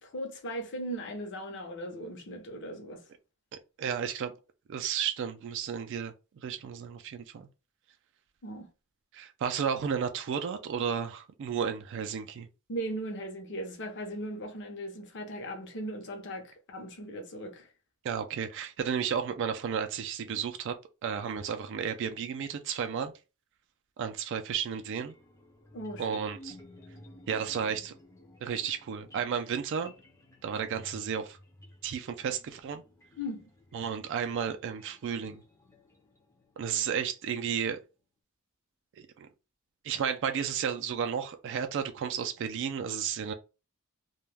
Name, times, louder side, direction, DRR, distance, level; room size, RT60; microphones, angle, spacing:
voice 1, 0.0-3.0 8.4-8.7 12.7-17.7 25.7-26.2 33.2-33.5, right 1 dB, 55° left, 0.7 m, -38 dB
voice 2, 3.8-4.4 4.7-6.1 6.4-7.5 9.1-12.5 18.0-20.8 21.0-23.1 24.0-25.1 26.0-26.6 27.3-27.9 28.4-29.9 30.4-31.4 31.8-32.8 33.7-35.4 36.6-37.8 39.0-39.3 39.8-43.3, right 7 dB, 55° right, 0.3 m, -33 dB
sound 1, 24.9-37.0, left 1 dB, 15° left, 0.5 m, -54 dB
2.2 x 2.1 x 3.2 m
head